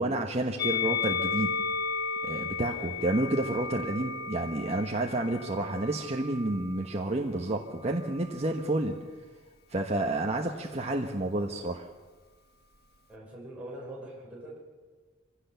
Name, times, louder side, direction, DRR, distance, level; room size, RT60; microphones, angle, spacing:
voice 1, 0.0-1.6 2.2-9.0 9.7-11.9, right 2 dB, 35° right, 2 dB, 1.2 m, -30 dB
Musical instrument, 0.6-7.0 7.8-8.8, left 5 dB, 55° left, 1.5 m, -34 dB
voice 2, 13.1-14.6, right 1 dB, 5° right, -5 dB, 6.4 m, -43 dB
24.0 x 16.5 x 6.9 m, 1.3 s
head